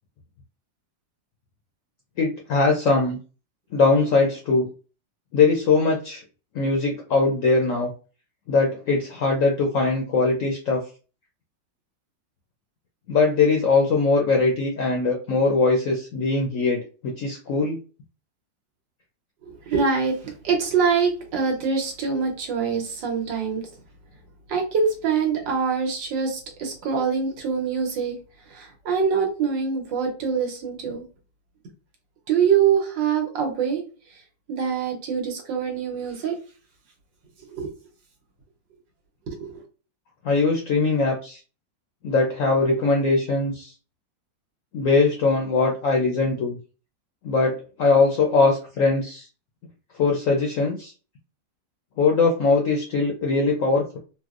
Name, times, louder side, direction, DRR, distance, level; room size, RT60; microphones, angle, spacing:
voice 1, 2.2-3.2 3.7-4.7 5.3-6.2 6.5-7.9 8.5-10.8 13.1-17.8 40.2-41.4 42.0-43.7 44.7-46.6 47.2-49.3 50.0-50.9 52.0-54.0, left 3 dB, 70° left, 0 dB, 0.7 m, -21 dB
voice 2, 19.4-23.7 24.5-28.2 28.5-31.0 32.3-33.8 34.1-34.2 34.5-36.3 37.4-37.7 39.3-39.5, right 6 dB, 80° right, 1 dB, 1.6 m, -24 dB
4.3 x 2.1 x 2.4 m, 0.35 s
omnidirectional pair, 2.0 m